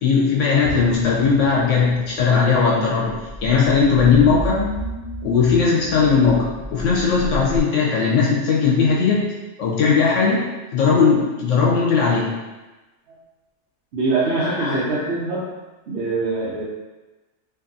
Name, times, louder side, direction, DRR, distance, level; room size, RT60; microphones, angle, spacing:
voice 1, 0.0-4.6 5.2-9.3 9.6-10.5 10.7-12.3 14.4-15.1, left 5 dB, 80° left, -4 dB, 1.1 m, -18 dB
sound 1, 3.3-7.6, left 1 dB, 50° left, 0.5 m, -31 dB
voice 2, 13.9-15.5 15.9-16.6, right 3 dB, 65° right, -8 dB, 0.8 m, -23 dB
2.6 x 2.6 x 2.6 m, 1.1 s
omnidirectional pair, 1.2 m